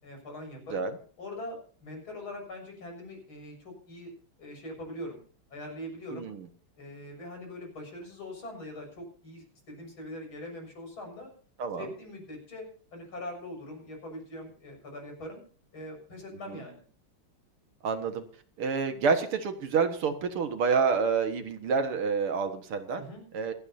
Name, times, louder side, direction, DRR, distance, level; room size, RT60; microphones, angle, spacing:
voice 1, 0.0-0.9 1.2-4.1 4.4-5.2 5.5-6.3 6.8-11.3 11.8-12.7 12.9-15.4 15.7-16.9 22.9-23.3, left 1 dB, 70° left, 1 dB, 7.4 m, -42 dB
voice 2, 6.1-6.4 11.6-11.9 16.5-16.6 17.8-18.2 18.6-23.0 23.3-23.5, right 5 dB, 80° right, 7 dB, 2.5 m, -28 dB
27.5 x 9.5 x 2.8 m, 0.44 s
omnidirectional pair, 2.4 m